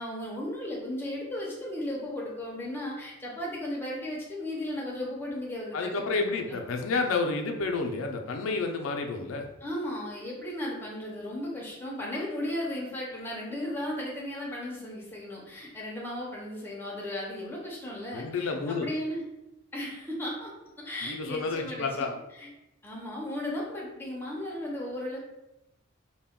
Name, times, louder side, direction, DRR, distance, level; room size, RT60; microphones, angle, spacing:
voice 1, 0.0-6.6 9.6-19.2 19.7-20.5 20.8-22.5 22.8-25.2, left 1 dB, 10° left, -4 dB, 0.5 m, -35 dB
voice 2, 5.7-9.5 18.1-18.9 21.0-22.1, left 3 dB, 75° left, 3 dB, 0.4 m, -30 dB
2.2 x 2.1 x 3.5 m, 0.92 s
head